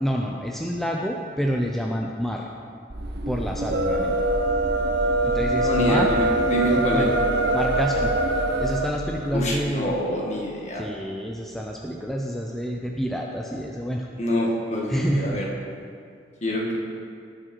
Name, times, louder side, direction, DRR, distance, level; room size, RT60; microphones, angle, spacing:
voice 1, 0.0-2.4 3.3-4.1 5.2-6.1 6.7-7.1 7.5-8.1 8.6-10.0 10.8-14.1 14.9-15.4, equal, ahead, -1 dB, 0.6 m, -28 dB
sound 1, 2.9-10.3, right 1 dB, 60° right, 0.9 m, -33 dB
sound 2, 3.6-8.9, right 1 dB, 85° right, 1.0 m, -23 dB
voice 2, 5.6-7.1 9.3-10.8 14.2-15.5 16.4-16.8, equal, 40° left, -2 dB, 2.0 m, -26 dB
18.0 x 6.3 x 4.6 m, 2.3 s
head